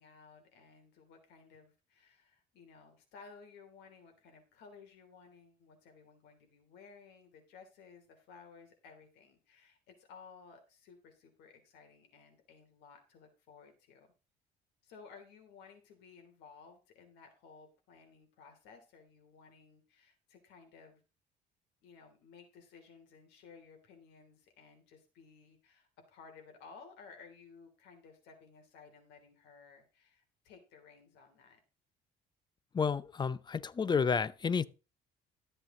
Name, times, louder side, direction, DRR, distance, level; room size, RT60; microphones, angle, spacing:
voice 1, 0.0-14.1 14.8-21.0 21.8-31.6, left 5 dB, 90° left, 3.3 m, -57 dB
voice 2, 32.7-34.7, left 5 dB, 25° left, 0.6 m, -31 dB
13.5 x 7.8 x 3.8 m
cardioid pair, 110°, 17 cm